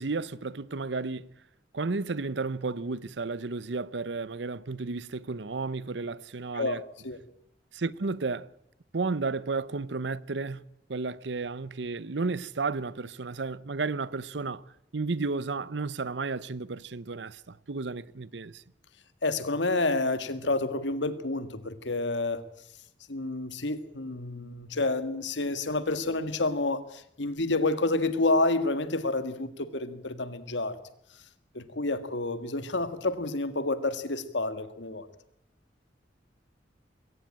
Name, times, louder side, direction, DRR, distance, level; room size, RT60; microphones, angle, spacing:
voice 1, 0.0-1.3 1.7-6.8 7.7-8.5 8.9-18.6, right 3 dB, 70° right, 0.8 m, -33 dB
voice 2, 19.2-22.4 23.1-30.8 31.5-35.1, left 2 dB, 75° left, 1.8 m, -29 dB
22.0 x 17.5 x 8.8 m
head